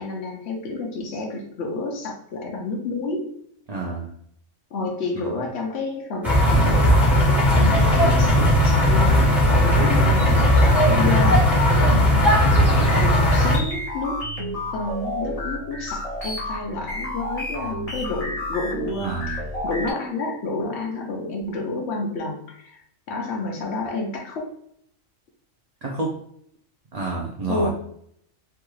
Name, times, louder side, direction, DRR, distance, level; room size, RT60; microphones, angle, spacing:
voice 1, 0.0-3.3 4.7-14.2 14.7-24.5 27.5-27.7, left 3 dB, 60° left, 1 dB, 0.8 m, -30 dB
voice 2, 3.7-4.1 5.2-5.5 9.6-9.9 19.0-19.4 25.8-26.2 26.9-27.7, right 3 dB, 65° right, -2 dB, 0.4 m, -29 dB
sound 1, 6.2-13.6, equal, ahead, 1.0 m, -17 dB
sound 2, 12.2-19.9, left 1 dB, 30° left, 0.8 m, -31 dB
3.5 x 2.3 x 3.0 m, 0.69 s
omnidirectional pair, 1.4 m